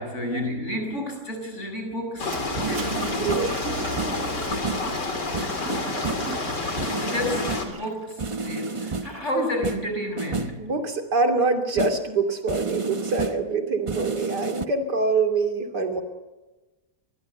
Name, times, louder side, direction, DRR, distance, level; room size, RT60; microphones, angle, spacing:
voice 1, 0.0-3.1 7.0-10.7, equal, 45° left, 5 dB, 6.1 m, -31 dB
sound 1, 2.1-2.2 2.6-3.6 4.0-5.0 5.3-6.4 6.8-7.8 8.2-9.3 9.6-10.6 11.8-12.1 12.5-13.5 13.9-14.6, right 4 dB, 30° right, 0.7 m, -31 dB
sound 2, 2.2-7.7, left 3 dB, 85° left, 3.7 m, -29 dB
Toilet flush, 2.2-9.5, right 6 dB, 55° right, 2.5 m, -38 dB
voice 2, 3.2-4.0 10.6-16.0, right 3 dB, 75° right, 6 dB, 3.4 m, -25 dB
23.5 x 21.5 x 7.9 m, 1.1 s
omnidirectional pair, 1.8 m